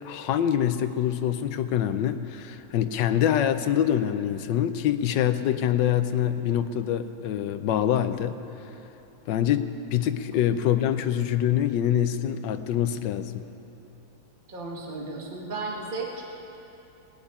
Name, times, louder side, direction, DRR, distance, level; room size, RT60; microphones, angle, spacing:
voice 1, 0.0-8.4 9.3-13.4, left 10 dB, 70° left, 10 dB, 1.2 m, -25 dB
voice 2, 14.5-16.2, right 3 dB, 25° right, -1 dB, 1.5 m, -34 dB
18.5 x 7.3 x 9.6 m, 3.0 s
omnidirectional pair, 2.3 m